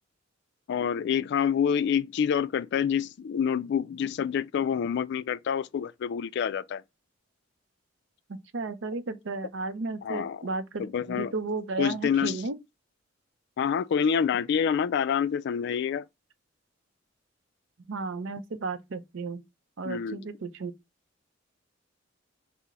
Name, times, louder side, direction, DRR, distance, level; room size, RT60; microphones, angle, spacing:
voice 1, 0.7-6.8 10.0-10.4 10.8-11.3 11.8-12.4 13.6-16.0 19.8-20.2, left 7 dB, 60° left, 0.3 m, -27 dB
voice 2, 8.5-12.6 17.9-19.4 19.8-20.7, right 3 dB, 70° right, 0.5 m, -33 dB
6.0 x 2.1 x 4.1 m
head